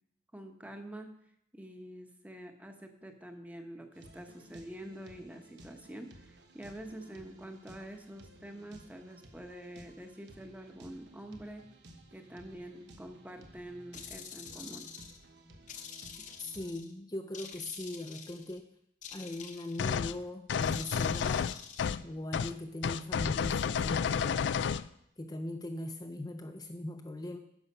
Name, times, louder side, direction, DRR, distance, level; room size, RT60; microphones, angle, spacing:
voice 1, 0.3-1.1 1.5-11.7 12.1-14.9, right 1 dB, 10° right, 5 dB, 1.0 m, -46 dB
sound 1, 3.9-16.7, right 1 dB, 75° right, 1.2 m, -56 dB
sound 2, 13.9-15.2 15.7-16.9 17.3-18.6 19.0-20.0 20.6-21.9, left 7 dB, 45° left, 1.0 m, -47 dB
voice 2, 16.4-18.6 19.1-21.5 22.0-24.5 25.2-27.4, left 1 dB, 20° left, 5 dB, 0.6 m, -40 dB
sound 3, 19.8-20.1 20.5-22.0 22.3-22.5 22.8-24.9, left 7 dB, 80° left, 0.4 m, -31 dB
10.5 x 7.1 x 5.5 m, 0.74 s
head